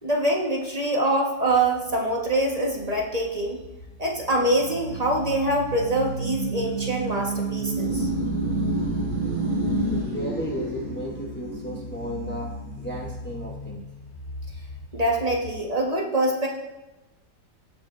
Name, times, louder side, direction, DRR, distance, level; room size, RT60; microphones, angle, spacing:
voice 1, 0.0-3.6 4.0-8.1 14.9-16.5, right 1 dB, 25° right, -1 dB, 1.2 m, -24 dB
sound 1, 1.5-15.6, right 2 dB, 75° right, 4.4 m, -31 dB
voice 2, 9.9-13.8, equal, 15° left, -1 dB, 0.3 m, -34 dB
17.0 x 6.9 x 2.6 m, 1.0 s
omnidirectional pair, 2.0 m